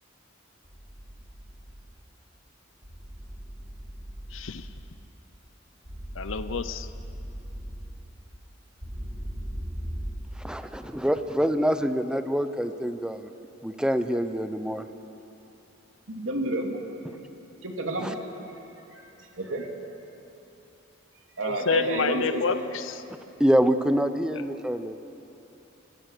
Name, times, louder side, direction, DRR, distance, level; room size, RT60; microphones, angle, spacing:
sound 1, 0.6-1.8 2.8-4.8 5.8-7.9 8.8-10.1, equal, 50° right, 6.3 m, -38 dB
voice 1, 4.3-4.7 6.1-6.9 21.4-23.0, left 5 dB, 75° left, 11 dB, 0.6 m, -29 dB
voice 2, 10.4-13.3 13.6-14.8 17.0-17.2 18.0-18.1 23.4-25.0, equal, 5° right, 9 dB, 0.8 m, -25 dB
voice 3, 16.1-17.0 17.6-18.2 18.9-19.0 19.4-19.7 21.4-22.6, right 1 dB, 85° right, 2 dB, 2.6 m, -30 dB
27.0 x 16.0 x 6.7 m, 2.9 s
head